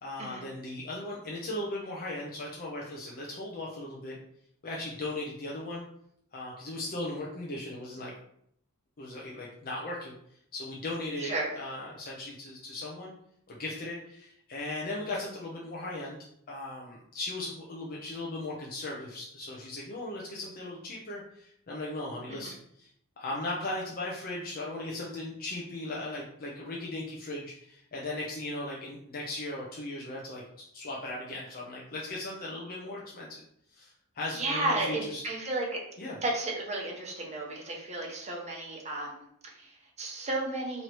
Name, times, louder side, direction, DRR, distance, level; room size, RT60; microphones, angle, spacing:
voice 1, 0.0-4.2 4.6-5.8 6.3-8.1 9.0-13.1 13.5-16.2 16.5-22.9 23.2-30.4 30.7-33.4 33.7-35.2 36.0-36.2, left 2 dB, 40° left, -3 dB, 0.6 m, -37 dB
voice 2, 11.2-11.5 22.3-22.5 34.3-35.8 36.2-40.8, right 2 dB, 30° right, -1 dB, 1.0 m, -33 dB
3.1 x 2.7 x 4.4 m, 0.70 s
head